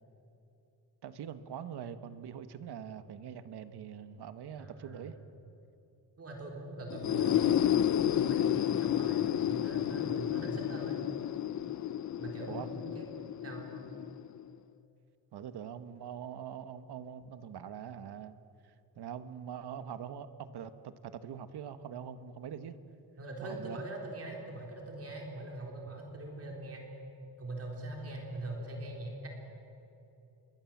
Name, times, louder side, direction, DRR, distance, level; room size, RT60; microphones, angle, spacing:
voice 1, 1.0-5.1 12.5-12.7 15.3-18.4 19.0-22.8 23.4-23.8, right 8 dB, 80° right, 11 dB, 1.5 m, -43 dB
voice 2, 4.6-5.2 6.2-11.0 12.2-13.0 13.4-13.7 23.2-26.8 27.4-29.3, right 2 dB, 35° right, 1 dB, 3.9 m, -42 dB
sound 1, 6.9-14.5, left 11 dB, 50° left, 0.6 m, -31 dB
27.5 x 22.5 x 7.4 m, 2.9 s
wide cardioid pair, 175°, 39 cm